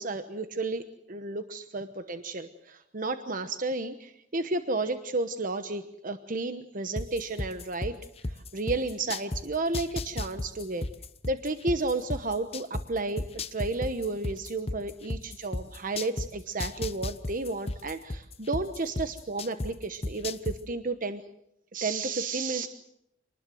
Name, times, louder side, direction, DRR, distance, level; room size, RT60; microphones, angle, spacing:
voice 1, 0.0-8.0 8.3-10.9 11.3-21.2 21.7-22.7, right 3 dB, 45° right, 10 dB, 1.1 m, -32 dB
sound 1, 7.0-9.4 9.7-12.8 13.2-16.3 16.6-19.7 20.0-20.6, left 2 dB, 30° left, 1.0 m, -32 dB
26.5 x 20.0 x 7.8 m, 0.80 s
head